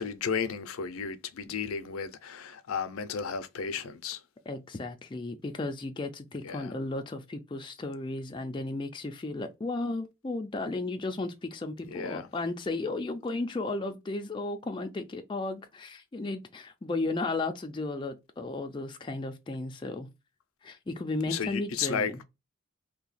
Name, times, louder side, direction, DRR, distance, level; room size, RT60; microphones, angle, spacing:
voice 1, 0.0-4.2 6.4-6.7 11.8-12.3 21.3-22.1, left 6 dB, 85° left, 0.5 m, -33 dB
voice 2, 4.5-20.1 20.6-22.2, left 2 dB, 25° left, 0.3 m, -34 dB
2.7 x 2.2 x 4.0 m
head